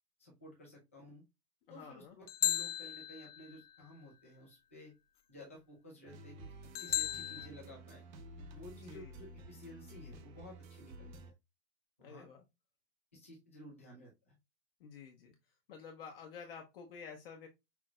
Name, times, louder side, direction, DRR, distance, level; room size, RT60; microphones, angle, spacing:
voice 1, 0.2-1.2 1.7-4.9 5.3-6.5 6.8-8.1 8.5-11.3 12.0-12.3 13.1-14.3, left 1 dB, 10° left, -2 dB, 0.4 m, -54 dB
voice 2, 1.7-2.2 8.7-9.2 12.0-12.4 14.8-15.3 15.7-17.5, left 6 dB, 35° left, 3 dB, 0.8 m, -50 dB
sound 1, 2.3-3.6 6.8-7.5, left 13 dB, 70° left, 0.6 m, -35 dB
sound 2, 6.1-11.3, right 1 dB, 30° right, 0.6 m, -52 dB
5.9 x 2.8 x 2.2 m, 0.21 s
hypercardioid pair, 155°, 49 cm